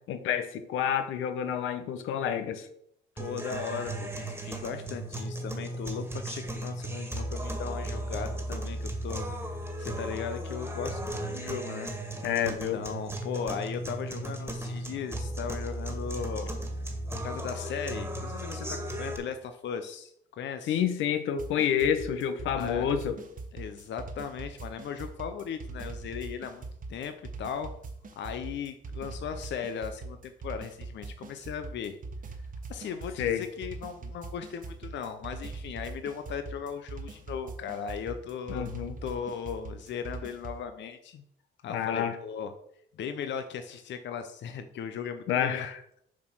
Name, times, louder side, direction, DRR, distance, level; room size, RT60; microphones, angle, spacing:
voice 1, 0.1-2.7 12.2-12.8 20.7-23.2 33.2-33.5 38.5-38.9 41.7-42.2 45.3-45.8, left 9 dB, 85° left, 8 dB, 0.9 m, -28 dB
voice 2, 3.2-11.9 12.7-16.6 17.2-20.8 22.4-22.9 23.5-26.6 26.9-27.7 28.2-32.0 32.7-38.7 39.0-41.2 41.6-42.5 42.9-45.7, left 7 dB, 65° left, 8 dB, 0.7 m, -37 dB
sound 1, 3.2-19.2, right 1 dB, 10° right, 1.7 m, -36 dB
sound 2, 21.4-40.6, right 3 dB, 40° right, 1.2 m, -41 dB
7.2 x 4.4 x 6.1 m, 0.71 s
cardioid pair, 90°, 20 cm